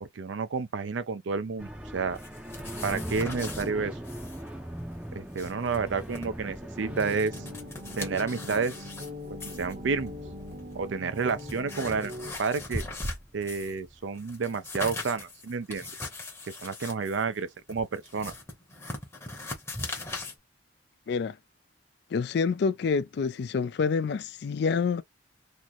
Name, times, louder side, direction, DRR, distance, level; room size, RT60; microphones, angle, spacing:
voice 1, 0.0-2.2 2.8-3.9 5.1-7.4 8.0-8.9 9.6-10.1 10.7-12.1 12.4-12.8 13.3-15.9 16.5-18.3, right 5 dB, 70° right, 0.5 m, -30 dB
sound 1, 1.6-14.0, right 1 dB, 5° right, 0.5 m, -42 dB
sound 2, 2.1-3.7 4.0-4.4 4.7-4.8 5.2-6.3 6.8-9.1 9.4-9.7 10.5-10.6 11.1-13.8 14.1-20.4, left 2 dB, 15° left, 0.9 m, -39 dB
sound 3, 6.8-12.3, left 1 dB, 45° right, 0.9 m, -41 dB
voice 2, 22.1-25.0, left 5 dB, 55° left, 0.3 m, -27 dB
3.1 x 2.1 x 3.8 m
head